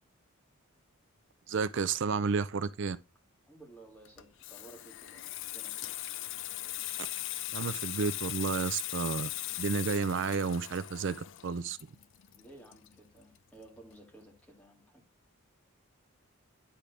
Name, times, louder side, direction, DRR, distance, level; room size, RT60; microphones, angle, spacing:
voice 1, 1.5-3.0 7.5-9.3 9.6-11.8, right 5 dB, 55° right, 0.4 m, -31 dB
voice 2, 3.5-5.9 12.4-15.0, right 2 dB, 5° left, 2.0 m, -55 dB
Water tap faucet / Sink (filling or washing), 4.0-13.4 13.6-13.9, left 14 dB, 55° left, 0.4 m, -39 dB
10.0 x 3.8 x 3.3 m
head